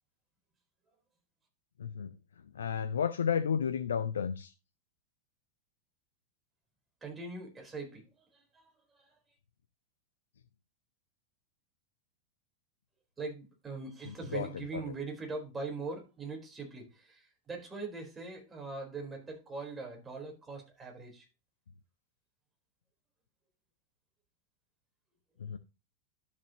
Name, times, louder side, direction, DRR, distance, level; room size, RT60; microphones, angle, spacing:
voice 1, 1.8-2.1 2.6-4.5 14.3-14.5 25.4-25.6, left 7 dB, 65° left, 0.5 m, -31 dB
voice 2, 7.0-9.1 13.2-21.3, right 3 dB, 15° right, 4.1 m, -42 dB
12.0 x 7.5 x 2.9 m
figure-of-eight pair, 90°, 0 cm